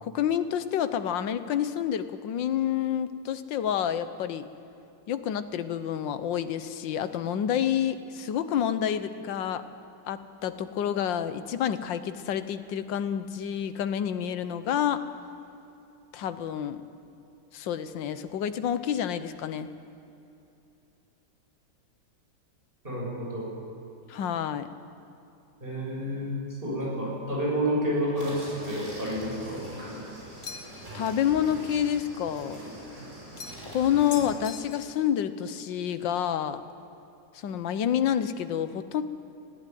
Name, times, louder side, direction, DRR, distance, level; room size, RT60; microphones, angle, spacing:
voice 1, 0.0-4.5 5.1-9.6 10.1-15.0 16.1-16.8 17.5-19.7 24.1-24.7 30.9-32.6 33.7-36.6 37.3-39.0, left 9 dB, 80° left, 11 dB, 1.6 m, -28 dB
voice 2, 22.8-23.5 25.6-30.0, equal, 30° right, -5 dB, 7.3 m, -30 dB
sound 1, 28.1-34.3, right 1 dB, 45° right, 6.7 m, -43 dB
sound 2, 30.4-30.9 33.4-33.8 34.1-35.1, left 5 dB, 40° left, 1.2 m, -41 dB
19.5 x 15.0 x 9.2 m, 2.8 s
omnidirectional pair, 2.0 m